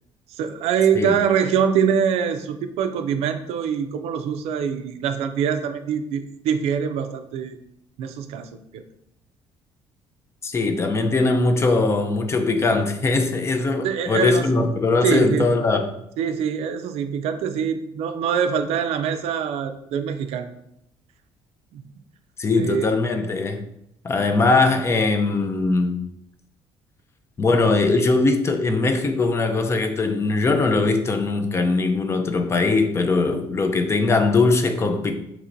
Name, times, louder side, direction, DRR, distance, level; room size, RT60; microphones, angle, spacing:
voice 1, 0.3-7.6 8.0-8.8 13.8-14.5 15.0-15.5 16.2-20.5 21.7-21.8 22.6-22.9, right 7 dB, 75° right, 0.4 m, -24 dB
voice 2, 10.4-15.9 22.4-23.6 24.0-26.0 27.4-35.1, left 3 dB, 25° left, 0.4 m, -20 dB
4.4 x 3.0 x 2.5 m
cardioid pair, 130°, 11 cm